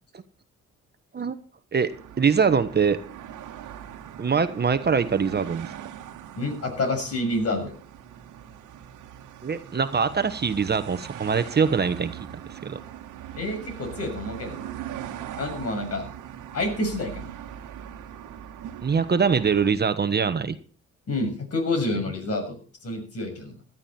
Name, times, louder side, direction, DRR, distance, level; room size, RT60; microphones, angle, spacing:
voice 1, 1.7-3.0 4.2-5.7 9.4-12.8 18.8-20.6, right 6 dB, 35° right, 11 dB, 1.2 m, -23 dB
sound 1, 1.9-19.7, right 10 dB, 85° right, 1.7 m, -41 dB
voice 2, 6.4-7.7 13.3-14.7 15.4-16.1 16.5-17.3 21.1-23.6, left 2 dB, 55° left, 4 dB, 6.8 m, -28 dB
17.0 x 12.5 x 4.4 m, 0.39 s
cardioid pair, 90°, 30 cm